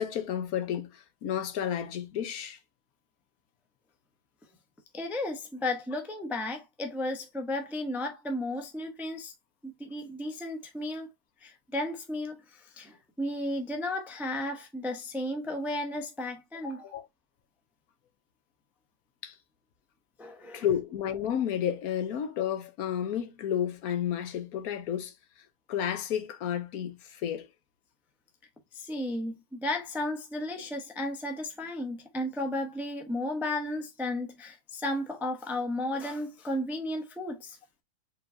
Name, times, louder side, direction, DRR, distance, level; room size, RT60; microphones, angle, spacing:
voice 1, 0.0-2.6 16.8-17.1 19.2-19.4 20.5-25.1 25.7-27.5, left 9 dB, 80° left, 1.2 m, -31 dB
voice 2, 4.9-9.3 9.6-11.1 11.4-16.9 20.2-20.7 28.7-37.6, left 1 dB, ahead, 0.4 m, -34 dB
4.5 x 3.8 x 2.5 m
omnidirectional pair, 1.6 m